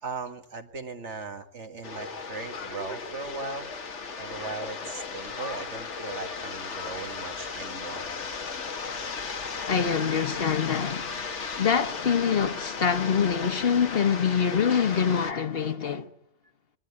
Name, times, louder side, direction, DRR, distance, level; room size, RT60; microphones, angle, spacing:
voice 1, 0.0-3.7 4.2-8.1, right 4 dB, 90° right, 2.2 m, -38 dB
sound 1, 1.8-15.3, left 5 dB, 85° left, 1.7 m, -36 dB
voice 2, 9.7-11.3 11.6-16.1, left 7 dB, 55° left, 1.4 m, -25 dB
24.5 x 21.0 x 9.9 m
omnidirectional pair, 1.2 m